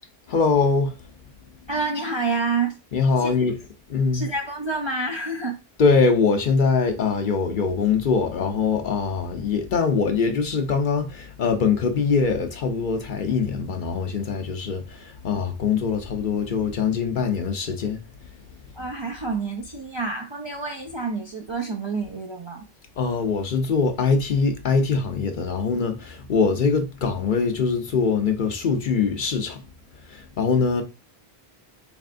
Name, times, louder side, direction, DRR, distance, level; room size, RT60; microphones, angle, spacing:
voice 1, 0.3-0.9 2.9-3.6 3.9-4.3 5.8-18.0 23.0-29.6 30.1-30.8, left 5 dB, 55° left, 0.7 m, -23 dB
voice 2, 1.7-2.8 3.2-3.3 4.1-5.6 18.7-22.6, right 3 dB, 40° right, 0.4 m, -28 dB
4.2 x 3.4 x 2.5 m
omnidirectional pair, 1.1 m